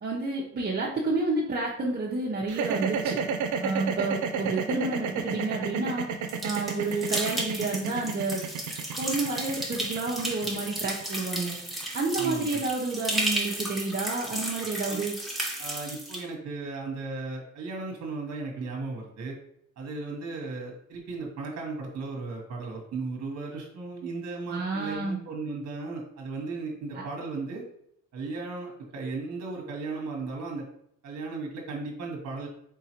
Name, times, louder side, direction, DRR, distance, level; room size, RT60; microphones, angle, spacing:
voice 1, 0.0-3.2 3.6-6.1 6.4-8.4 9.0-11.5 11.9-15.2 24.5-25.2 26.9-27.0, right 3 dB, 35° right, -4 dB, 0.8 m, -30 dB
sound 1, 2.5-12.7, right 6 dB, 80° right, 0.6 m, -31 dB
sound 2, 6.3-16.2, right 1 dB, ahead, 1.0 m, -34 dB
voice 2, 12.2-12.6 14.9-15.0 15.6-19.4 19.8-27.7 28.1-30.7 31.0-32.5, right 3 dB, 60° right, 1 dB, 1.1 m, -36 dB
3.8 x 3.7 x 2.9 m, 0.72 s
cardioid pair, 90°, 30 cm